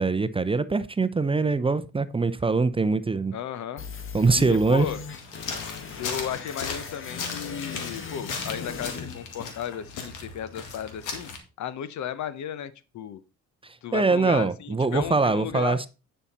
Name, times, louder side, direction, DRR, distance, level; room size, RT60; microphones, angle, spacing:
voice 1, 0.0-3.3 4.1-4.9 13.9-15.9, right 3 dB, 20° right, 0.6 m, -23 dB
voice 2, 3.3-3.8 4.3-5.0 6.0-11.3 11.6-13.2 13.8-15.8, left 10 dB, 70° left, 0.9 m, -34 dB
sound 1, 3.8-9.8, left 5 dB, 45° left, 1.5 m, -39 dB
sound 2, 5.1-11.4, left 5 dB, 90° left, 2.0 m, -37 dB
9.8 x 5.8 x 4.1 m
cardioid pair, 90°, 30 cm